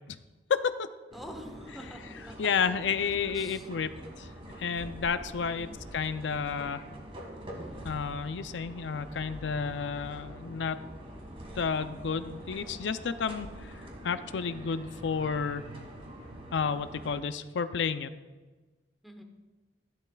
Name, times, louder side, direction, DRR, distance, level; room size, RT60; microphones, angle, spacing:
voice 1, 0.5-0.9 2.4-3.9 4.2-4.3 4.6-6.8 7.8-10.8 11.6-13.7 14.0-15.6 16.5-18.1, left 6 dB, 85° left, 11 dB, 0.5 m, -31 dB
voice 2, 1.1-2.3 3.3-3.7 5.5-5.8 19.0-19.2, equal, ahead, 4 dB, 0.9 m, -47 dB
sound 1, 1.1-17.2, equal, 35° right, 1.8 m, -45 dB
14.0 x 11.5 x 2.3 m, 1.3 s
head